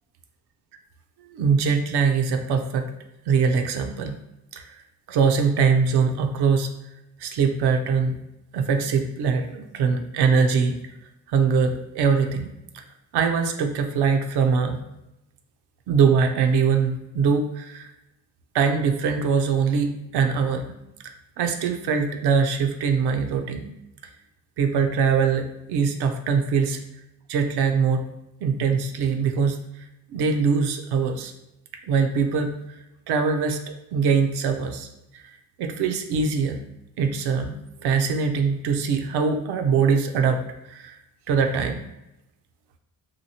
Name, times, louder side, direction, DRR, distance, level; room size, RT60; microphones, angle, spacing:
voice 1, 1.3-2.9 3.3-4.2 4.5-4.7 5.1-6.7 7.2-8.2 8.5-10.8 11.3-12.5 12.7-12.8 13.1-14.8 15.9-17.9 18.5-20.8 21.0-23.7 24.6-26.8 27.3-28.0 28.4-29.6 30.1-31.3 31.9-32.5 33.1-34.9 35.1-35.2 35.6-36.6 37.0-37.5 37.8-40.4 40.7-41.0 41.3-41.8, right 5 dB, 70° right, 5 dB, 0.5 m, -22 dB
2.8 x 2.7 x 2.7 m, 0.89 s
supercardioid pair, 50°, 41 cm